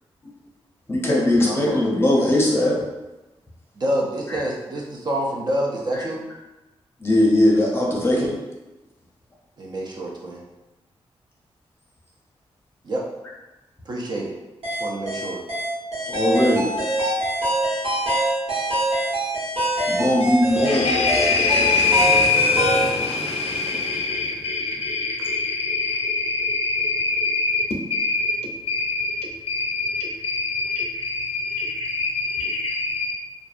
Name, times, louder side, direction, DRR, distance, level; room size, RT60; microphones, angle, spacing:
voice 1, 0.9-2.8 4.3-4.4 5.9-6.0 7.0-8.5 16.1-16.8 19.9-20.9, left 1 dB, 25° left, -4 dB, 0.7 m, -20 dB
voice 2, 1.4-1.8 3.8-6.2 9.6-10.4 12.8-13.0 13.9-14.3 14.8-15.4, right 1 dB, 45° right, -2 dB, 0.5 m, -27 dB
sound 1, 14.6-22.9, right 1 dB, 85° right, 1.1 m, -24 dB
voice 3, 20.5-33.1, left 3 dB, 75° left, 0 dB, 0.4 m, -23 dB
2.6 x 2.2 x 2.4 m, 1.0 s
wide cardioid pair, 110°, 10 cm